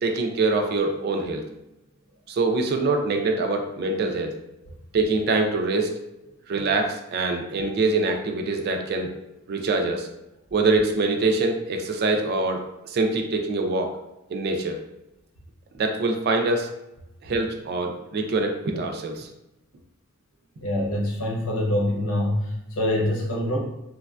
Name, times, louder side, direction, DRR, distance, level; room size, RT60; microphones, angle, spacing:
voice 1, 0.0-1.4 2.3-4.3 4.9-5.9 6.5-9.1 9.5-10.1 10.5-13.9 14.3-14.8 15.8-16.7 17.2-19.3, right 3 dB, 50° right, 3 dB, 0.3 m, -24 dB
voice 2, 20.6-23.6, left 1 dB, 85° left, -3 dB, 0.8 m, -25 dB
3.1 x 2.1 x 2.4 m, 0.90 s
head